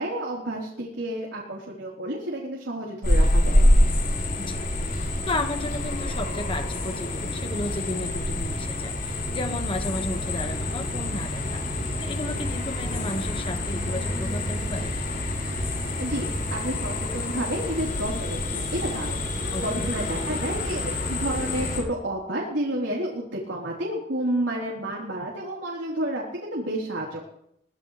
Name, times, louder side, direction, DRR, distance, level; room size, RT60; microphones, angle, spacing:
voice 1, 0.0-3.7 16.0-20.8 21.1-27.2, right 1 dB, 70° right, -3 dB, 4.1 m, -30 dB
sound 1, 3.0-21.8, left 1 dB, 50° left, 7.5 m, -26 dB
voice 2, 5.0-11.6 12.0-14.9 19.5-19.9, left 2 dB, 30° left, 6 dB, 1.7 m, -33 dB
23.0 x 18.5 x 3.4 m, 0.76 s
head